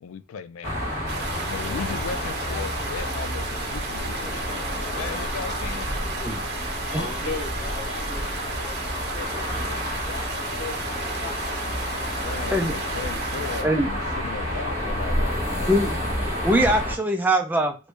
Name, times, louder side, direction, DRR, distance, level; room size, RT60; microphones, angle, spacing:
voice 1, 0.0-0.9 1.4-5.9 11.9-15.8, left 6 dB, 80° left, 0.3 m, -37 dB
sound 1, 0.6-16.9, equal, 30° left, 1.0 m, -29 dB
sound 2, 1.1-13.6, right 4 dB, 50° right, 0.7 m, -35 dB
voice 2, 6.8-9.8 10.1-10.8 11.2-11.3, left 3 dB, 55° left, 1.2 m, -37 dB
voice 3, 16.4-17.8, right 1 dB, 10° right, 0.4 m, -22 dB
3.0 x 2.6 x 3.2 m
head